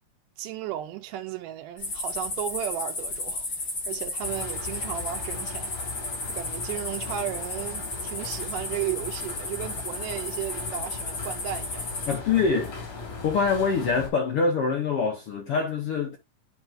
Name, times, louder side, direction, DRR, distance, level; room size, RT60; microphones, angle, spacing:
voice 1, 0.4-3.5 3.9-5.7 6.3-11.9, right 12 dB, 90° right, 2.3 m, -34 dB
sound 1, 1.8-12.1, left 2 dB, 35° left, 3.2 m, -34 dB
sound 2, 4.2-14.1, left 4 dB, 90° left, 4.8 m, -39 dB
voice 2, 12.1-12.7 13.2-16.2, left 5 dB, 60° left, 1.6 m, -24 dB
10.5 x 4.5 x 2.5 m
omnidirectional pair, 3.7 m